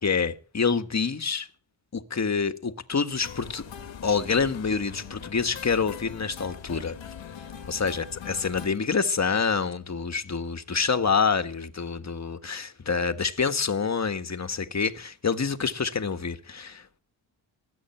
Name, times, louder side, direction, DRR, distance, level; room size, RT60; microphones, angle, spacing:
voice 1, 0.0-1.5 1.9-3.6 4.0-7.0 7.7-17.0, left 5 dB, 35° left, 1.5 m, -27 dB
sound 1, 3.2-8.7, left 8 dB, 80° left, 1.8 m, -41 dB
20.5 x 8.5 x 4.5 m
cardioid pair, 60°, 45 cm